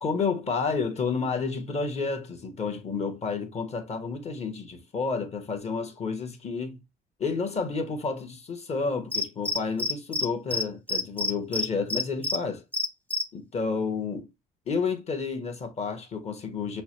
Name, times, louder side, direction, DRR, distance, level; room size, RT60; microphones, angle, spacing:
voice 1, 0.0-6.8 7.2-12.6 13.3-14.3 14.7-16.8, left 4 dB, 40° left, 1.4 m, -30 dB
Cricket, 9.1-10.3 10.5-10.6 10.9-12.4 12.7-13.2, left 2 dB, 10° left, 0.9 m, -27 dB
5.9 x 2.2 x 2.9 m
cardioid pair, 110°, 17 cm